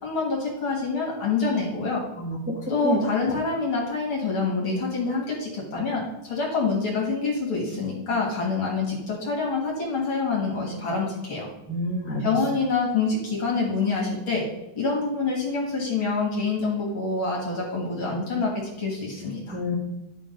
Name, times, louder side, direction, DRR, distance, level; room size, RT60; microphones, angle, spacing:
voice 1, 0.0-2.0 2.7-11.5 12.2-14.4 14.7-19.6, left 4 dB, 45° left, -3 dB, 2.2 m, -26 dB
voice 2, 2.2-2.6 2.8-3.0 3.2-3.3 11.7-12.2 19.5-19.8, left 1 dB, 5° right, -5 dB, 0.9 m, -28 dB
11.0 x 3.8 x 5.1 m, 0.92 s
omnidirectional pair, 3.5 m